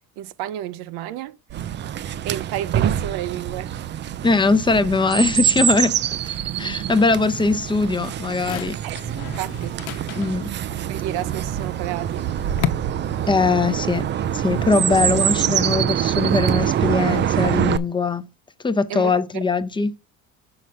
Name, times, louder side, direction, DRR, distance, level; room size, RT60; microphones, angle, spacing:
voice 1, 0.2-1.4 2.2-3.7 8.8-9.0 9.2-9.8 10.9-12.3 18.9-19.4, right 12 dB, 75° right, 0.7 m, -31 dB
Chirp tweet, 1.5-17.8, right 10 dB, 30° right, 0.3 m, -24 dB
voice 2, 4.2-6.0 6.2-8.8 10.2-10.5 13.3-18.3 18.6-19.9, left 4 dB, 10° left, 0.6 m, -21 dB
sound 1, 7.4-12.7, left 13 dB, 65° left, 1.0 m, -34 dB
6.2 x 5.9 x 5.4 m
cardioid pair, 120°, 40 cm